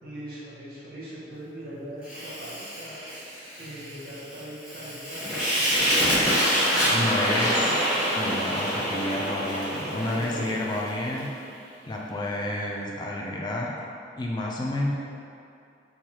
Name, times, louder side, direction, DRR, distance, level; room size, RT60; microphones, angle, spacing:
voice 1, 0.0-3.0 3.6-5.6 6.7-7.9 9.8-10.6, equal, 55° right, -8 dB, 0.8 m, -40 dB
Fire, 2.0-11.3, equal, 5° right, 0.9 m, -27 dB
voice 2, 6.9-7.6 8.2-11.3 11.9-13.7 14.2-14.9, left 1 dB, 25° left, -2 dB, 0.3 m, -30 dB
4.6 x 2.3 x 2.8 m, 2.6 s
head